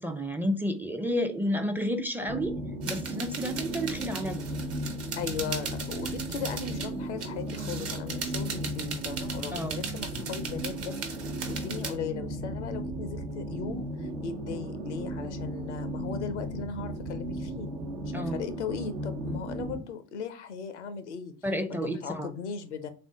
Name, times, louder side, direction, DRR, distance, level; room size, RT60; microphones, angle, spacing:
voice 1, 0.0-2.5 2.8-4.4 9.5-9.8 18.1-18.3 21.4-22.3, equal, 5° right, 0.4 m, -31 dB
sound 1, 2.3-19.8, right 1 dB, 70° right, 0.9 m, -35 dB
sound 2, 2.8-6.9 7.2-11.9, right 5 dB, 45° right, 0.9 m, -38 dB
voice 2, 5.1-10.9 11.5-17.7 18.1-21.3 21.7-22.9, left 6 dB, 80° left, 0.5 m, -37 dB
3.6 x 2.5 x 3.5 m
figure-of-eight pair, 55°, 34 cm